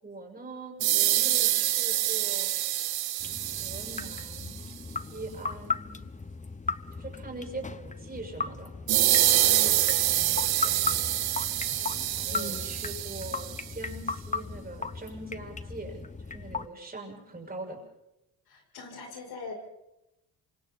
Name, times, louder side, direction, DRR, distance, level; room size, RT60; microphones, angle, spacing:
voice 1, 0.0-2.5 3.6-4.6 5.1-6.0 7.0-8.7 9.1-11.1 12.1-16.0 16.3-17.8, right 2 dB, 25° right, 0 dB, 7.2 m, -42 dB
sound 1, 0.8-4.6 8.9-13.6, right 13 dB, 70° right, 1.1 m, -26 dB
sound 2, 3.2-16.7, left 4 dB, 20° left, 1.0 m, -37 dB
voice 2, 9.4-9.8 12.3-12.6 18.5-19.5, left 3 dB, 70° left, 1 dB, 7.4 m, -40 dB
27.5 x 25.0 x 4.3 m, 0.90 s
cardioid pair, 80°, 39 cm